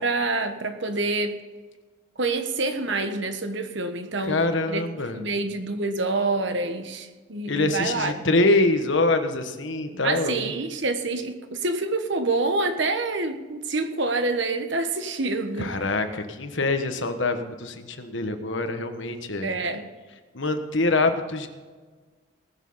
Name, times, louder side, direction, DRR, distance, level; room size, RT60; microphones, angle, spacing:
voice 1, 0.0-1.4 2.2-4.4 4.7-4.8 5.1-8.1 10.0-15.7 19.4-19.9, right 3 dB, 60° right, 7 dB, 1.3 m, -27 dB
voice 2, 4.2-5.2 7.5-10.5 15.6-19.5 20.3-21.5, left 2 dB, 60° left, 7 dB, 1.3 m, -24 dB
19.5 x 7.3 x 5.6 m, 1.4 s
head